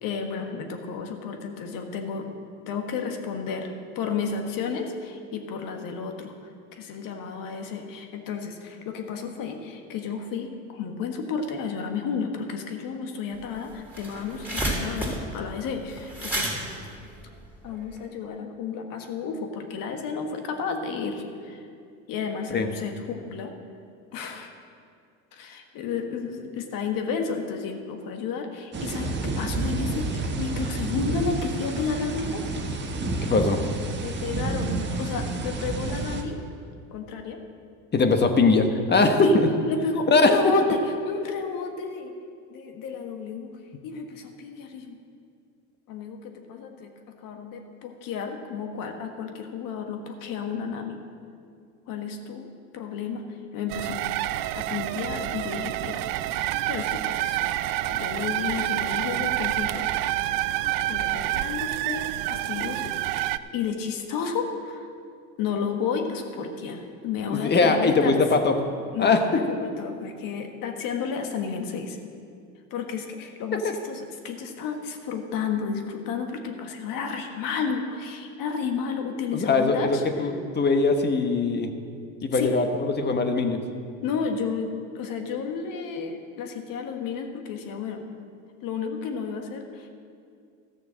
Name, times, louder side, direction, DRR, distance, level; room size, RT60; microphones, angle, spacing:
voice 1, 0.0-2.3 2.7-3.7 3.9-16.6 17.6-21.7 22.1-23.5 24.1-24.5 25.3-32.4 34.0-36.4 36.9-37.4 39.2-39.4 39.7-42.1 42.5-45.0 45.9-46.9 47.2-51.0 51.9-53.2 53.5-54.0 54.3-59.9 60.9-63.0 63.5-64.9 65.4-68.1 68.9-72.0 72.7-80.3 82.3-82.6 84.0-88.0 88.6-89.9, left 5 dB, 55° left, 4 dB, 1.6 m, -32 dB
sound 1, 13.4-13.5 13.7-18.0, right 1 dB, 5° right, 3.3 m, -31 dB
sound 2, 28.7-36.2, right 3 dB, 30° right, 1.3 m, -30 dB
voice 2, 33.3-33.6 37.9-39.5 40.1-40.4 67.3-68.5 69.0-69.2 69.5-69.6 79.3-81.7 82.2-82.7 82.9-83.6, left 3 dB, 25° left, 6 dB, 1.2 m, -21 dB
sound 3, 53.7-63.4, right 15 dB, 55° right, 0.5 m, -28 dB
13.5 x 6.8 x 6.4 m, 2.3 s
hypercardioid pair, 90°, 39 cm